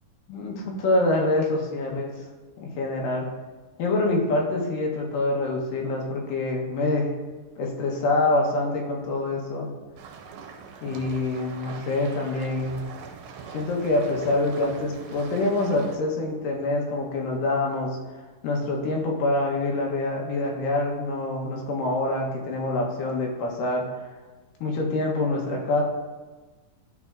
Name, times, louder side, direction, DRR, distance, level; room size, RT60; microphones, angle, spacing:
voice 1, 0.8-2.1 2.6-3.3 3.8-7.1 7.6-9.7 10.8-12.8 13.5-18.0 18.4-23.9 24.6-25.8, left 2 dB, 85° left, -1 dB, 2.7 m, -25 dB
sound 1, 10.0-16.0, right 6 dB, 75° right, 1.9 m, -42 dB
11.5 x 4.2 x 2.4 m, 1.3 s
omnidirectional pair, 3.8 m